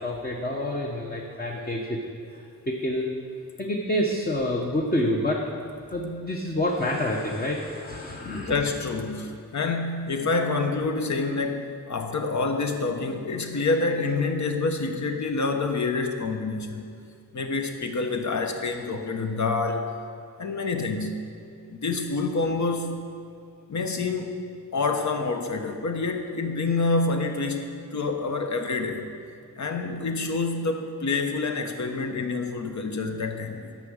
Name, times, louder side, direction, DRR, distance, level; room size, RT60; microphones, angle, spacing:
voice 1, 0.0-2.0 2.3-3.2 3.6-5.4 5.9-8.5, left 1 dB, 25° left, -1 dB, 1.0 m, -28 dB
voice 2, 8.2-17.0 17.3-19.9 20.4-21.2 21.7-23.0 23.7-24.4 24.7-27.7 27.9-29.1 29.6-33.7, left 3 dB, 50° left, 5 dB, 1.1 m, -27 dB
10.5 x 7.2 x 6.5 m, 2.4 s
wide cardioid pair, 120°, 37 cm